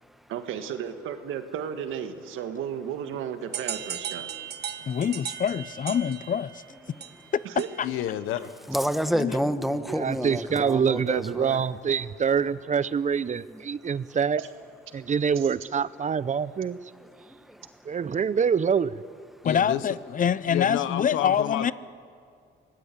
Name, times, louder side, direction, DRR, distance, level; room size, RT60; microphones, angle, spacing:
voice 1, 0.3-4.3 7.4-7.7 14.4-14.5 15.4-15.5, right 8 dB, 90° right, 1.7 m, -34 dB
sound 1, 3.5-8.0, right 9 dB, 55° right, 1.4 m, -37 dB
voice 2, 4.9-6.6 7.3-7.4 7.8-7.9 9.1-9.4 19.4-21.7, left 8 dB, 40° left, 0.6 m, -25 dB
voice 3, 7.8-8.6 19.4-19.9 20.5-21.7, left 12 dB, 90° left, 1.0 m, -30 dB
voice 4, 8.7-11.6 13.5-13.6 17.2-17.7, equal, ahead, 1.3 m, -29 dB
voice 5, 9.9-14.4 14.9-16.8 17.9-19.0, right 6 dB, 40° right, 0.7 m, -25 dB
24.5 x 19.0 x 8.4 m
cardioid pair, 90°, 20 cm